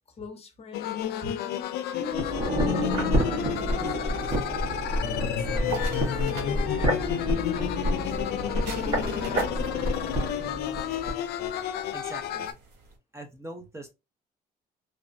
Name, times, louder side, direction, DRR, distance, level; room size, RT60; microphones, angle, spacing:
voice 1, 0.1-1.6 2.0-4.7 5.2-5.8 6.1-10.9, left 3 dB, 35° left, 0.7 m, -44 dB
sound 1, 0.7-12.5, left 11 dB, 75° left, 0.4 m, -31 dB
sound 2, 2.1-11.2 11.5-11.6, equal, 50° right, 1.4 m, -29 dB
sound 3, 2.8-13.0, right 4 dB, 85° right, 0.8 m, -44 dB
voice 2, 11.9-12.6 13.1-13.9, right 2 dB, 15° right, 0.6 m, -41 dB
3.1 x 2.1 x 2.5 m
cardioid pair, 110°, 17 cm